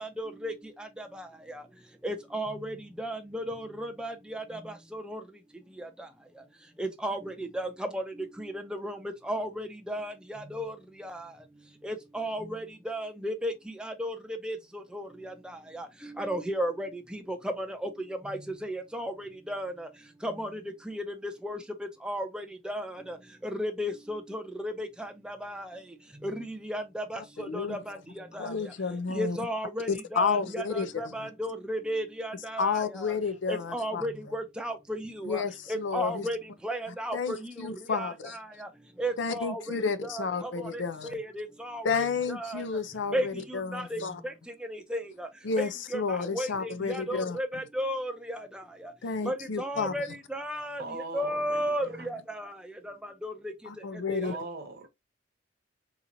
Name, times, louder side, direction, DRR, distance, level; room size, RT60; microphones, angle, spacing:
voice 1, 0.0-0.5 2.0-4.4 4.9-5.2 6.8-7.2 7.5-7.7 7.9-8.0 8.8-8.9 9.3-10.1 10.5-10.7 11.8-12.4 12.9-13.5 14.0-14.1 14.4-14.6 16.2-16.9 18.3-19.1 19.5-19.7 20.2-20.5 21.4-21.6 22.1-22.3 22.7-22.8 23.6-24.9 26.2-26.3 26.7-27.2 27.5-28.0 29.1-30.6 31.0-32.7 33.5-34.7 35.2-35.4 35.9-36.4 36.6-37.4 39.0-39.6 41.1-41.5 41.7-42.0 42.4-42.5 43.1-43.2 43.7-44.0 44.9-45.0 45.6-45.7 45.9-46.0 46.3-46.5 46.9-48.1 49.3-50.0 50.3-50.8 51.1-51.8 53.2-53.3 54.1-54.2, equal, 5° right, 0.5 m, -32 dB
voice 2, 27.2-27.8 28.4-29.4 29.9-31.3 32.6-34.0 35.2-36.3 37.1-38.4 39.2-41.2 41.8-44.2 45.4-47.4 49.0-49.9 53.7-54.3, left 5 dB, 75° left, 0.5 m, -31 dB
voice 3, 50.8-52.2 54.2-54.9, right 3 dB, 50° right, 0.9 m, -41 dB
3.9 x 2.9 x 2.6 m
head